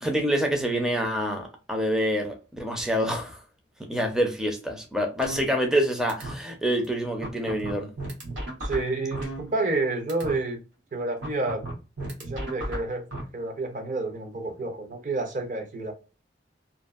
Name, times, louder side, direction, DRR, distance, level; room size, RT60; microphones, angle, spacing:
voice 1, 0.0-3.4 3.9-7.9, equal, 5° right, 0.4 m, -26 dB
sound 1, 5.2-5.8 6.1-6.3 6.8-6.9 7.2-9.8 10.1-10.3 11.2-13.2, right 1 dB, 70° right, 1.0 m, -34 dB
voice 2, 8.6-10.6 10.9-11.7 12.0-13.1 13.3-15.9, right 2 dB, 40° right, 0.7 m, -29 dB
2.6 x 2.4 x 2.3 m
head